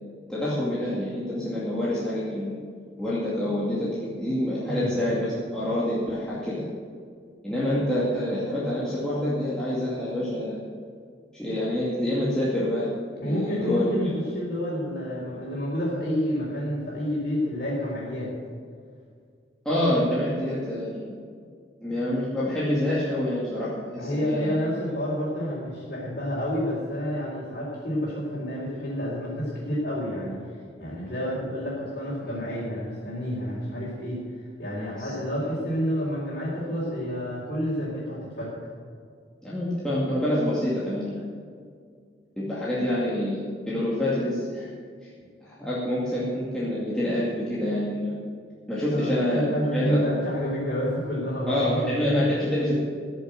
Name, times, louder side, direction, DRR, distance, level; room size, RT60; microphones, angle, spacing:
voice 1, 0.3-2.6 3.0-3.9 4.2-6.6 7.4-10.6 11.4-12.9 13.2-14.1 19.6-21.2 21.8-24.5 35.0-35.1 39.4-41.2 42.4-44.7 45.0-45.1 45.4-48.2 48.7-49.5 49.7-50.0 51.5-52.8, left 1 dB, 5° left, -10 dB, 2.3 m, -27 dB
voice 2, 13.2-18.3 24.0-30.4 30.8-34.2 34.6-38.5 48.9-52.0, equal, 50° left, -9 dB, 4.2 m, -29 dB
15.0 x 7.0 x 8.0 m, 2.1 s
head